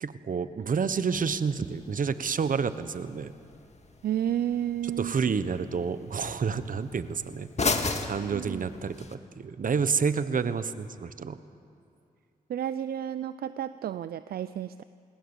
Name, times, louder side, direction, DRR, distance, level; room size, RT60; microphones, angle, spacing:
voice 1, 0.0-3.3 5.0-7.5 8.0-11.4, right 6 dB, 60° right, 12 dB, 1.2 m, -29 dB
sound 1, 1.1-9.1, left 3 dB, 45° left, 2.0 m, -37 dB
voice 2, 4.0-5.1 8.3-8.7 12.5-14.8, right 10 dB, 80° right, 14 dB, 0.5 m, -31 dB
26.0 x 20.0 x 7.2 m, 2.5 s
cardioid pair, 50°, 16 cm